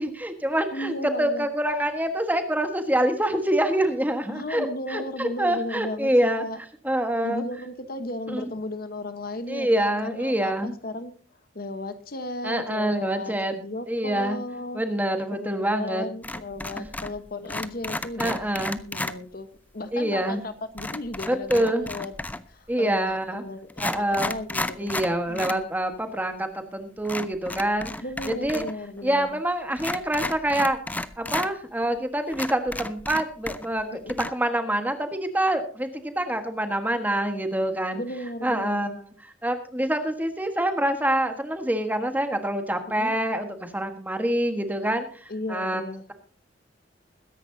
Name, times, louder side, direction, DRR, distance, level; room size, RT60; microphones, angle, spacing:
voice 1, 0.0-0.9 1.2-6.4 6.8-7.4 8.3-8.5 9.5-10.7 12.4-13.5 13.9-14.4 14.7-16.1 18.2-18.8 19.9-20.4 21.3-21.8 22.7-23.4 23.8-24.3 24.8-27.9 28.3-28.6 29.0-30.8 31.2-33.8 34.3-38.0 38.4-39.0 39.2-45.8, right 1 dB, 10° right, 7 dB, 1.4 m, -26 dB
voice 2, 0.7-1.5 4.3-6.1 6.4-6.6 7.2-14.8 15.3-18.5 18.9-19.5 19.7-22.1 22.5-25.6 28.0-29.4 33.9-34.3 37.9-38.9 42.9-43.1 45.3-46.1, left 1 dB, 50° left, 10 dB, 1.2 m, -35 dB
sound 1, 16.2-17.2 17.5-19.2 20.8-22.5 23.2-23.3 23.7-25.6 25.9-26.0 27.0-28.7 29.0-29.1 29.8-31.5 32.0-32.1 32.3-33.8 34.1-34.3, left 2 dB, 10° left, 0.5 m, -33 dB
21.5 x 10.5 x 2.7 m, 0.43 s
head